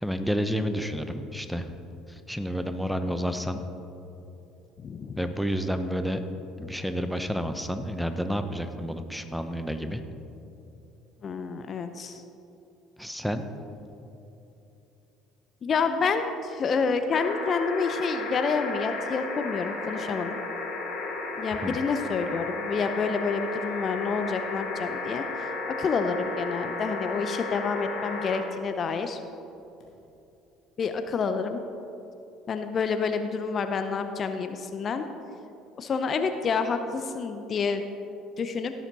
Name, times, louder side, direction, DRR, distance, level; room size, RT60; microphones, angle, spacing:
voice 1, 0.0-1.7 2.1-3.6 5.2-6.2 6.6-10.0 13.0-13.4 21.6-21.8, equal, ahead, 8 dB, 0.9 m, -30 dB
voice 2, 4.8-5.2 11.2-12.2 15.6-20.4 21.4-29.2 30.8-31.6 32.5-35.0 35.8-37.8 38.4-38.7, left 5 dB, 40° left, 8 dB, 0.7 m, -28 dB
sound 1, 17.1-28.4 29.8-29.9, left 3 dB, 60° left, 2.4 m, -34 dB
17.0 x 7.3 x 4.1 m, 2.8 s
hypercardioid pair, 60°, 0 cm